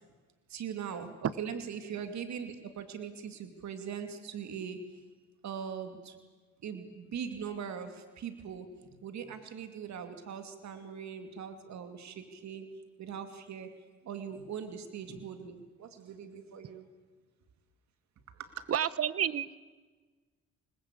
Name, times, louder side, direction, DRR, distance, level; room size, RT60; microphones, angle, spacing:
voice 1, 0.5-5.0 5.4-6.2 6.6-8.7 9.0-13.7 14.0-16.9 18.4-18.5, right 7 dB, 65° right, 7 dB, 2.6 m, -41 dB
voice 2, 18.7-19.6, right 9 dB, 50° right, 17 dB, 1.2 m, -30 dB
27.5 x 20.5 x 8.5 m, 1.3 s
cardioid pair, 90°, 30 cm